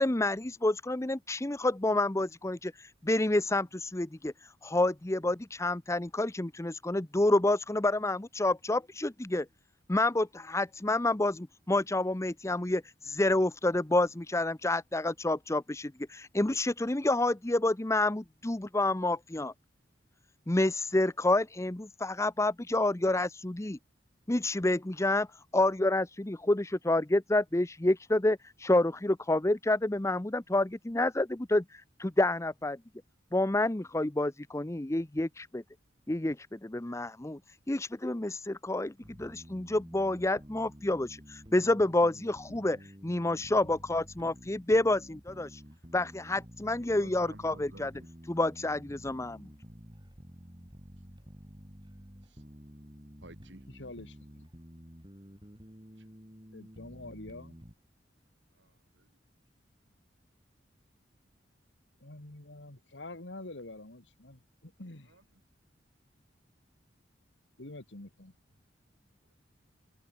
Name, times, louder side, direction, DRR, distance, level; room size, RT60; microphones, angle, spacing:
voice 1, 0.0-9.5 9.9-19.5 20.5-23.8 24.3-32.8 33.3-35.6 36.1-37.4 37.7-45.6 45.9-47.9 48.3-49.5, left 2 dB, 15° left, 0.7 m, -29 dB
sound 1, 39.0-57.7, equal, 25° right, 6.3 m, -51 dB
voice 2, 42.5-42.9 43.7-43.8 53.7-54.2 56.5-57.5 62.0-65.1 67.6-68.4, left 2 dB, 75° left, 2.5 m, -46 dB
voice 3, 47.0-48.1 52.2-52.4 53.2-53.7 58.6-59.1 65.1-65.2, right 1 dB, 75° right, 5.0 m, -53 dB
head